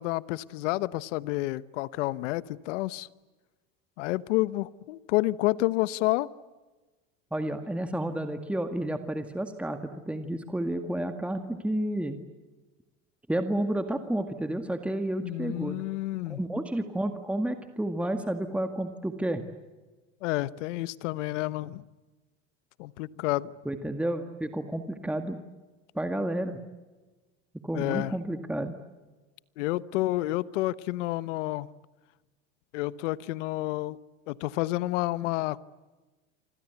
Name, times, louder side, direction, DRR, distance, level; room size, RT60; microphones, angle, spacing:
voice 1, 0.0-3.1 4.0-6.3 15.2-16.4 20.2-21.8 22.8-23.5 27.7-28.2 29.6-31.7 32.7-34.0 34.3-35.6, left 18 dB, 75° left, 17 dB, 1.1 m, -29 dB
voice 2, 7.3-12.2 13.3-15.8 16.4-19.4 23.7-25.4 26.0-26.6 27.6-28.7, right 1 dB, 5° right, 6 dB, 1.9 m, -31 dB
28.5 x 25.5 x 8.2 m, 1.2 s
supercardioid pair, 105°, 36 cm